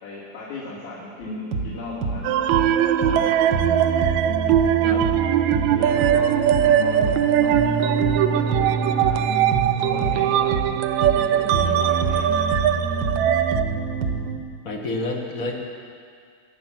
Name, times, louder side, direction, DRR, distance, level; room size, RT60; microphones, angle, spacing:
voice 1, 0.0-3.7 5.7-9.2 9.8-10.5 11.1-12.8, left 2 dB, 70° left, -10 dB, 3.9 m, -38 dB
sound 1, 1.2-14.4, right 4 dB, 55° right, 1.2 m, -27 dB
sound 2, 2.2-13.6, right 10 dB, 80° right, 1.8 m, -21 dB
voice 2, 14.6-15.6, left 2 dB, 55° left, 1 dB, 0.9 m, -28 dB
23.0 x 8.1 x 6.0 m, 2.1 s
omnidirectional pair, 3.4 m